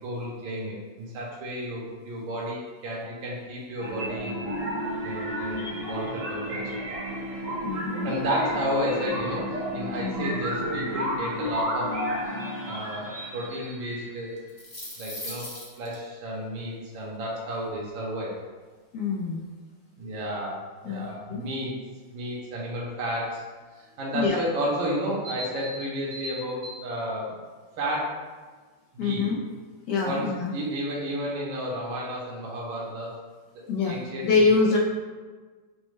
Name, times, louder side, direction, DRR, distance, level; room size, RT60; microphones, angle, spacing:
voice 1, 0.0-4.6 5.0-6.6 8.0-11.9 12.6-14.3 15.0-15.5 15.8-18.3 20.0-21.7 22.1-23.4 23.7-27.4 27.8-28.1 28.9-29.2 30.0-33.1 33.8-34.7, equal, 75° right, -4 dB, 1.5 m, -32 dB
sound 1, 3.8-14.4, equal, 55° right, 1.0 m, -32 dB
voice 2, 7.6-8.1 10.0-10.4 18.9-19.4 20.8-21.5 24.1-24.4 29.0-29.4 29.9-30.5 33.7-34.8, left 4 dB, 75° left, -2 dB, 1.0 m, -25 dB
sound 2, 14.4-15.9, left 1 dB, 45° left, 0.6 m, -38 dB
6.2 x 2.1 x 3.1 m, 1.4 s
omnidirectional pair, 2.3 m